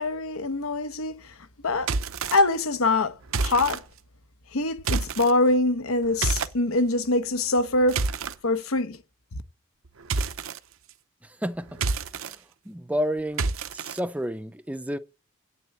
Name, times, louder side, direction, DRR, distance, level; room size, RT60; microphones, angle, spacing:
voice 1, 0.0-1.3 1.6-1.9 2.3-3.8 4.5-8.0 8.4-9.0, left 2 dB, 85° left, 0.9 m, -24 dB
sound 1, 1.8-2.4 3.3-3.8 4.8-5.3 6.2-6.5 7.6-8.3 10.1-10.6 11.7-12.3 13.4-14.0, right 4 dB, 75° right, 0.7 m, -28 dB
voice 2, 11.2-11.8 12.2-12.4 12.7-15.0, equal, 5° right, 0.5 m, -31 dB
9.1 x 7.0 x 8.3 m
head